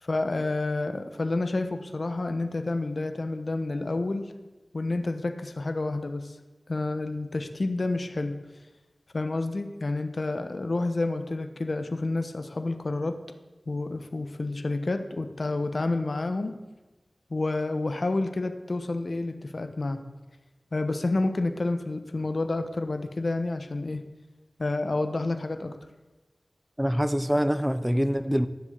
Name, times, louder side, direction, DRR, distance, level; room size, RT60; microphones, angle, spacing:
voice 1, 0.0-4.3 4.7-6.4 6.7-8.4 9.1-13.2 13.7-16.6 17.3-20.0 20.7-24.0 24.6-25.8, left 2 dB, 65° left, 1.2 m, -29 dB
voice 2, 26.8-28.5, equal, 5° right, 0.8 m, -25 dB
14.5 x 7.2 x 8.1 m
wide cardioid pair, 70°, 0 cm